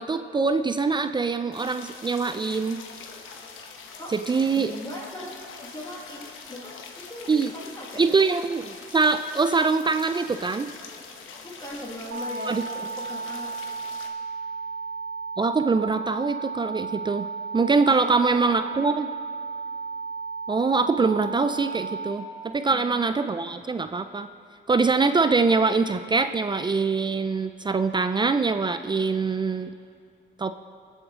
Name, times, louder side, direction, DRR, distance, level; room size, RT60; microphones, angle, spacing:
voice 1, 0.0-2.8 4.1-4.7 7.3-7.5 8.0-10.7 12.5-12.6 15.4-17.3 17.5-19.1 20.5-22.3 22.5-24.3 24.7-29.7 30.4-30.5, right 4 dB, 25° right, 10 dB, 0.4 m, -23 dB
sound 1, 1.5-14.1, left 5 dB, 80° left, 1.2 m, -43 dB
voice 2, 4.5-5.3 5.6-8.2 11.4-13.5 17.7-18.0 18.5-18.6 22.7-23.3, left 1 dB, 20° left, -4 dB, 1.8 m, -39 dB
sound 2, 12.1-22.1, right 4 dB, 55° right, 1.3 m, -34 dB
23.0 x 7.9 x 3.7 m, 2.5 s
cardioid pair, 90°, 20 cm